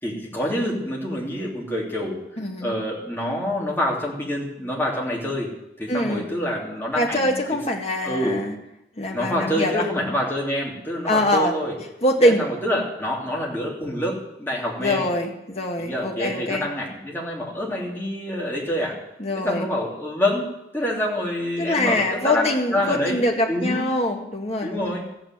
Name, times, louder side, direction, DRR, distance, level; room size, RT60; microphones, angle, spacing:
voice 1, 0.0-2.2 2.6-5.5 5.8-7.4 8.0-8.4 9.1-11.7 12.2-15.1 15.8-19.0 19.3-20.5 20.7-23.2 23.5-23.8 24.6-25.1, left 1 dB, 10° left, -4 dB, 3.0 m, -26 dB
voice 2, 2.4-2.7 5.9-6.3 7.0-8.5 9.0-9.9 11.1-11.5 12.0-12.5 14.8-16.7 19.2-19.7 21.6-24.9, left 1 dB, 35° left, 1 dB, 1.9 m, -23 dB
14.0 x 9.1 x 7.6 m, 0.86 s
head